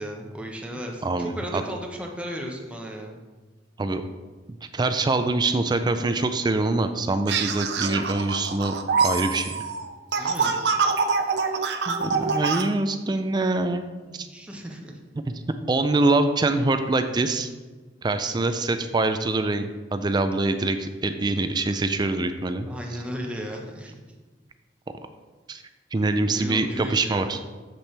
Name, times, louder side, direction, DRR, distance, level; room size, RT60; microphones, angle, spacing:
voice 1, 0.0-3.2 10.2-10.7 14.1-15.0 22.7-24.0 26.2-27.4, equal, 5° right, 0 dB, 1.0 m, -35 dB
voice 2, 1.0-1.6 3.8-4.0 4.5-8.7 9.0-9.6 11.9-13.8 14.1-14.3 15.7-17.5 18.0-22.7 25.5-25.6 25.9-27.4, right 2 dB, 25° right, 9 dB, 0.4 m, -24 dB
sound 1, 7.3-12.6, right 5 dB, 70° right, 0.6 m, -25 dB
7.6 x 7.0 x 3.3 m, 1.3 s
head